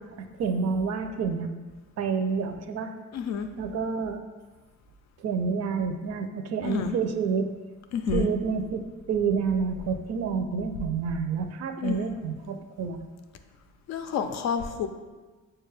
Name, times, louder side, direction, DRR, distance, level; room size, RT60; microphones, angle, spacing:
voice 1, 0.2-1.5 2.0-2.9 3.6-4.2 5.2-7.5 8.1-13.0, right 5 dB, 60° right, 6 dB, 0.5 m, -29 dB
voice 2, 3.1-3.5 6.6-6.9 7.9-8.3 11.8-12.0 13.9-14.9, left 6 dB, 65° left, 7 dB, 0.4 m, -28 dB
6.1 x 2.3 x 3.2 m, 1.3 s
cardioid pair, 90°, 30 cm